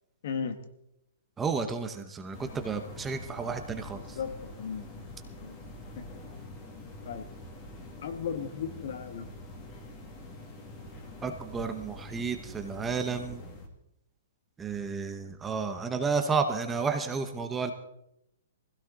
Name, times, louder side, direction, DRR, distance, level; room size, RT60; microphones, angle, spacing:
voice 1, 0.2-0.6 3.9-5.0 5.4-5.6 5.9-6.0 7.0-7.3 8.0-9.3, left 7 dB, 50° left, 10 dB, 1.5 m, -36 dB
voice 2, 1.4-4.2 11.2-13.4 14.6-17.7, right 5 dB, 10° right, 6 dB, 0.8 m, -32 dB
sound 1, 2.3-13.7, left 2 dB, 20° left, 2.1 m, -45 dB
20.5 x 16.0 x 3.9 m, 0.80 s
hypercardioid pair, 170°, 0 cm